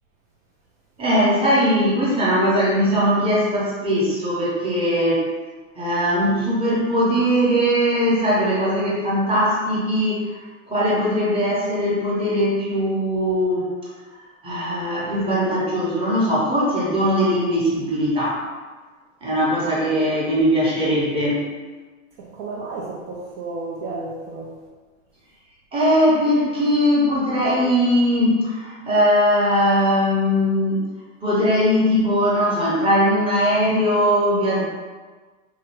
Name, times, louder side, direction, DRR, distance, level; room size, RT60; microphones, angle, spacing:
voice 1, 1.0-5.3 5.8-10.4 10.7-13.7 14.4-18.4 19.2-21.4 25.7-30.8 31.2-34.6, equal, 15° right, -7 dB, 0.9 m, -20 dB
voice 2, 22.2-24.5, right 3 dB, 45° right, -4 dB, 0.5 m, -32 dB
2.8 x 2.4 x 3.0 m, 1.3 s
hypercardioid pair, 120°, 40 cm